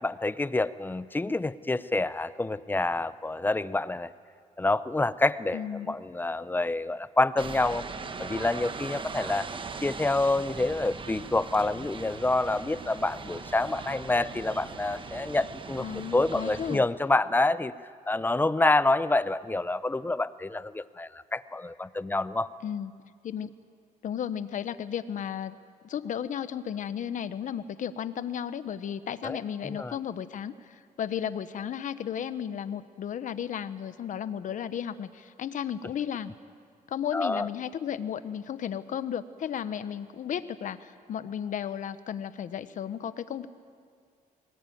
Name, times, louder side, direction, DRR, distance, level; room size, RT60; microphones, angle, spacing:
voice 1, 0.0-4.1 4.6-5.6 5.9-7.8 8.2-9.5 9.8-15.9 16.1-17.7 18.1-22.5 29.2-29.4 29.6-29.9 37.1-37.5, left 2 dB, 15° left, 16 dB, 0.6 m, -27 dB
voice 2, 5.5-6.0 15.8-16.8 22.6-22.9 23.2-23.5 24.0-25.6 25.8-36.3 36.9-43.5, left 9 dB, 65° left, 13 dB, 1.0 m, -34 dB
sound 1, 7.4-16.8, right 4 dB, 35° right, 1.2 m, -40 dB
22.5 x 19.0 x 9.2 m, 2.3 s
cardioid pair, 115°, 14 cm